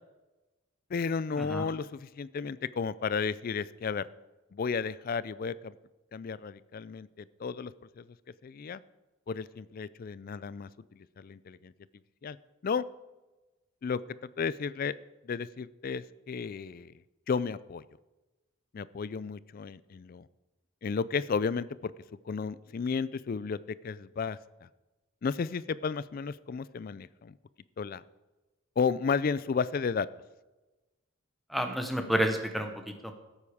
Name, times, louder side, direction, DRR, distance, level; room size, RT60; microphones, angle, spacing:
voice 1, 0.9-4.1 4.5-5.7 6.1-8.0 8.4-8.8 9.3-11.7 12.2-12.4 12.6-12.8 13.8-14.9 15.2-16.9 17.3-17.8 18.7-20.3 20.8-21.9 22.3-24.7 25.2-27.4 27.8-28.0 28.8-30.1, left 5 dB, 40° left, 18 dB, 0.3 m, -33 dB
voice 2, 31.5-33.1, equal, ahead, 5 dB, 0.9 m, -30 dB
13.5 x 8.5 x 4.9 m, 1.1 s
head